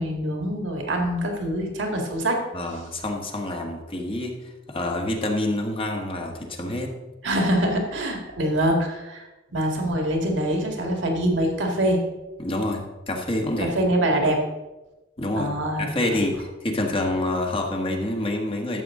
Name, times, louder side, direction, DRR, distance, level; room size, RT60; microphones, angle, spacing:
voice 1, 0.0-2.4 7.2-9.3 9.5-12.0 13.6-14.4 15.4-16.2, right 1 dB, 70° right, 2 dB, 2.0 m, -24 dB
voice 2, 2.5-4.3 4.7-7.0 12.4-13.7 15.2-15.5 15.8-18.8, left 1 dB, 30° left, 2 dB, 1.4 m, -27 dB
12.5 x 7.7 x 3.8 m, 1.1 s
head